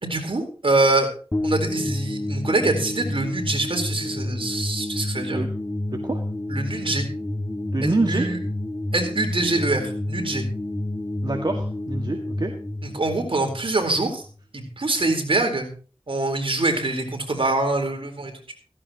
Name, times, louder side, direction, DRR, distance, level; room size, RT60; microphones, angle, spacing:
voice 1, 0.0-1.1 1.4-5.4 6.5-7.1 7.8-8.4 8.9-10.4 12.8-14.2 14.5-15.7 16.1-18.5, right 2 dB, 65° right, 3 dB, 4.1 m, -24 dB
sound 1, 1.3-14.4, left 1 dB, 25° left, 2.0 m, -29 dB
voice 2, 5.9-6.2 7.7-8.3 11.2-12.5, right 2 dB, 50° right, 2 dB, 1.9 m, -26 dB
16.5 x 15.5 x 3.0 m, 0.39 s
wide cardioid pair, 45°, 10 cm